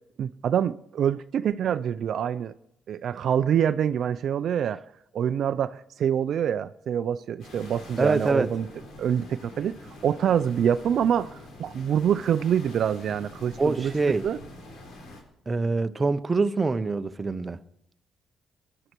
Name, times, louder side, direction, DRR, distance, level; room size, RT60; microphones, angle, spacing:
voice 1, 0.2-2.5 2.9-4.8 5.1-8.7 9.0-14.4, right 9 dB, 65° right, 0.5 m, -26 dB
sound 1, 7.4-15.2, left 2 dB, 80° left, 4.6 m, -45 dB
voice 2, 8.0-8.5 13.6-14.2 15.5-17.6, right 3 dB, 25° right, 0.8 m, -24 dB
21.5 x 11.0 x 4.6 m
cardioid pair, 90°, 0 cm